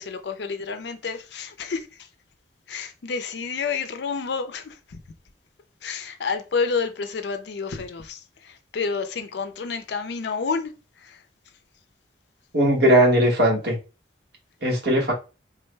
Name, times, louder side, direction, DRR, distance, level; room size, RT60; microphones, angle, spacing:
voice 1, 0.0-1.9 2.7-4.7 5.8-8.2 8.4-10.7 11.0-11.2, left 5 dB, 65° left, 0.4 m, -29 dB
voice 2, 12.5-13.8 14.6-15.1, right 1 dB, 60° right, 1.2 m, -18 dB
3.6 x 2.2 x 3.2 m
head